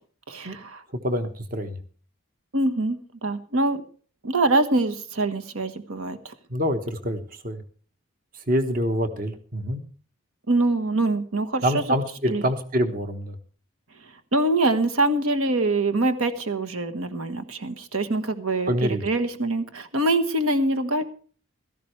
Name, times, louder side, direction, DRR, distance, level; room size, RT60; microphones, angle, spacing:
voice 1, 0.3-0.8 2.5-3.8 4.2-6.3 10.5-11.8 12.3-12.4 14.3-21.0, right 2 dB, 80° right, 8 dB, 1.3 m, -24 dB
voice 2, 1.0-1.8 6.5-7.6 8.5-9.8 11.6-13.4 18.7-19.0, equal, 40° right, 8 dB, 1.3 m, -26 dB
16.0 x 13.5 x 3.3 m, 0.42 s
head